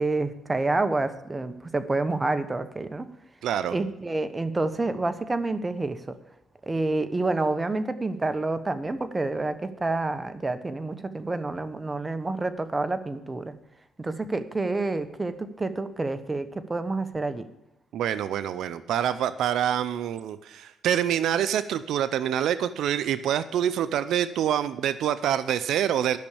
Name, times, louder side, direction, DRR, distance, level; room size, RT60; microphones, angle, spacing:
voice 1, 0.0-3.1 3.7-6.2 6.7-13.5 14.0-17.4, right 2 dB, 20° right, 10 dB, 1.1 m, -28 dB
voice 2, 3.4-3.8 17.9-26.2, right 10 dB, 75° right, 13 dB, 0.5 m, -26 dB
12.0 x 6.3 x 8.5 m, 0.90 s
cardioid pair, 90°, 0 cm